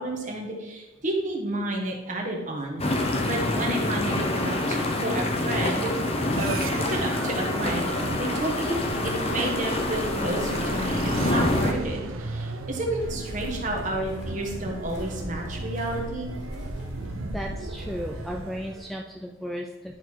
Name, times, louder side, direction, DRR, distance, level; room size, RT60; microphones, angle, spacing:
voice 1, 0.0-2.8 3.3-5.9 6.3-8.8 9.0-16.3, right 1 dB, 35° right, 0 dB, 1.4 m, -31 dB
sound 1, 2.8-11.7, left 1 dB, 30° left, 0.8 m, -26 dB
sound 2, 6.3-19.0, right 2 dB, 80° right, 0.6 m, -36 dB
sound 3, 13.0-18.4, equal, 55° left, 2.2 m, -39 dB
voice 2, 17.3-20.0, equal, ahead, 1 dB, 0.3 m, -35 dB
10.5 x 4.1 x 4.5 m, 1.2 s
head